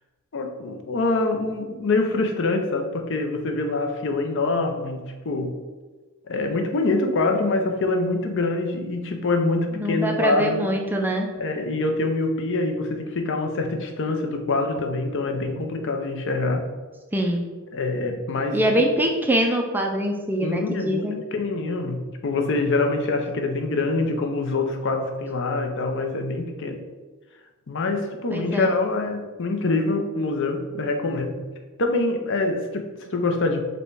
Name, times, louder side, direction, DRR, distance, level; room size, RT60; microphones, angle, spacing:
voice 1, 0.3-5.6 6.3-10.7 11.4-16.7 17.7-18.9 20.4-21.0 21.3-26.8 27.7-31.4 31.8-33.6, left 3 dB, 60° left, 5 dB, 0.6 m, -25 dB
voice 2, 9.8-11.3 17.1-17.4 18.5-21.2 28.3-28.8, right 1 dB, 10° right, 2 dB, 0.4 m, -23 dB
5.1 x 2.2 x 4.6 m, 1.3 s
head